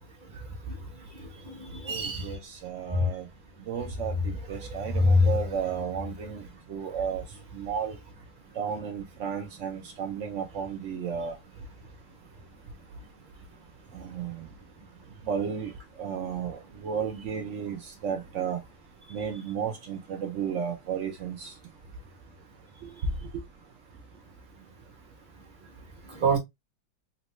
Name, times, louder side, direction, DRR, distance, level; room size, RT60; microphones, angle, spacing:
voice 1, 1.1-2.3 2.9-3.1 4.6-5.3 26.1-26.4, left 1 dB, 30° right, 1.1 m, -25 dB
voice 2, 1.8-3.3 3.7-6.4 6.7-7.2 7.5-8.0 8.5-11.4 13.9-14.5 15.3-15.7 16.0-18.6 19.1-21.5 22.8-22.9, right 7 dB, 75° right, 0.6 m, -33 dB
3.9 x 2.2 x 3.0 m
omnidirectional pair, 2.0 m